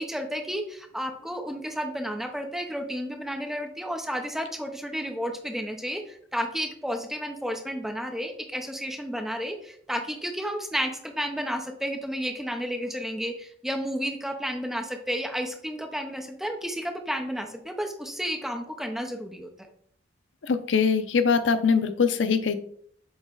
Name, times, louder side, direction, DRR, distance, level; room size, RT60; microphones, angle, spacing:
voice 1, 0.0-19.5, equal, ahead, 4 dB, 0.7 m, -32 dB
voice 2, 20.5-22.5, left 5 dB, 80° left, 10 dB, 0.6 m, -22 dB
7.9 x 3.1 x 3.8 m, 0.64 s
head